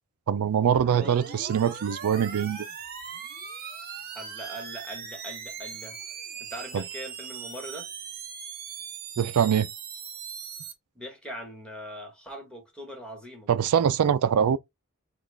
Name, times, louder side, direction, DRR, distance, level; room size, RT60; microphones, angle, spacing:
voice 1, 0.3-2.7 6.7-6.8 9.2-9.7 13.5-14.6, right 8 dB, 85° right, 0.4 m, -23 dB
sound 1, 0.7-10.7, right 6 dB, 45° right, 1.0 m, -40 dB
voice 2, 4.1-6.0 6.4-7.9 10.9-13.5, equal, 5° left, 1.4 m, -41 dB
5.7 x 2.4 x 3.4 m
head